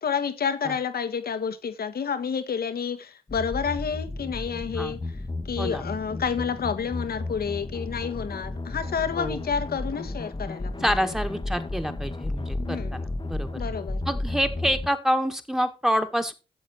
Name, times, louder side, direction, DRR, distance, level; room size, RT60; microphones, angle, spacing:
voice 1, 0.0-5.0 5.5-11.1 12.6-13.0 13.5-14.0, left 6 dB, 60° left, 1.5 m, -29 dB
sound 1, 3.3-14.9, left 2 dB, 25° left, 1.3 m, -33 dB
voice 2, 10.8-13.6 14.1-16.3, equal, ahead, 2.0 m, -27 dB
11.5 x 7.3 x 4.4 m
supercardioid pair, 50°, 18 cm